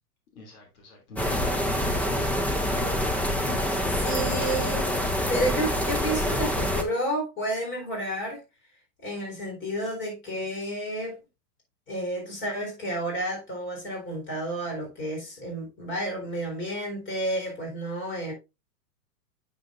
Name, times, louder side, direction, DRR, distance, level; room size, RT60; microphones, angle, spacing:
voice 1, 0.3-4.5, left 5 dB, 65° left, 2.8 m, -43 dB
sound 1, 1.2-6.8, equal, 5° left, 0.5 m, -26 dB
voice 2, 4.0-5.0 5.3-8.4 9.0-11.2 11.9-18.3, right 1 dB, 25° left, 4.0 m, -31 dB
8.8 x 6.7 x 2.5 m
hypercardioid pair, 125°, 45 cm